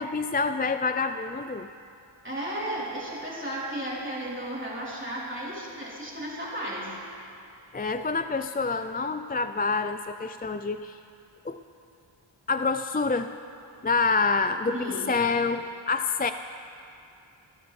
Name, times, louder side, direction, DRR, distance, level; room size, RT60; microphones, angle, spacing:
voice 1, 0.0-1.7 7.7-11.0 11.4-11.6 12.5-13.3 13.8-16.3, left 4 dB, 20° left, 9 dB, 0.3 m, -27 dB
voice 2, 2.2-6.9 14.7-15.1, right 1 dB, 25° right, -7 dB, 3.5 m, -34 dB
26.0 x 10.0 x 3.2 m, 2.7 s
wide cardioid pair, 40°, 49 cm